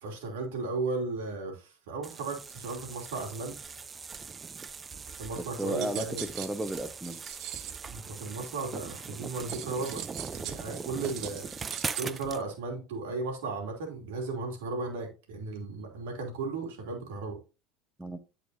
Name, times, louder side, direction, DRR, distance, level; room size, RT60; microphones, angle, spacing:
voice 1, 0.0-3.6 5.2-6.2 7.9-10.0 10.3-11.5 11.9-17.4, right 3 dB, 80° right, 2.9 m, -35 dB
sound 1, 2.0-12.4, right 5 dB, 25° right, 0.5 m, -41 dB
voice 2, 5.4-7.2 18.0-18.2, right 1 dB, 10° right, 1.1 m, -34 dB
sound 2, 5.6-7.9 9.5-12.0, right 12 dB, 60° right, 0.8 m, -41 dB
13.0 x 5.0 x 2.7 m
hypercardioid pair, 90°, 0 cm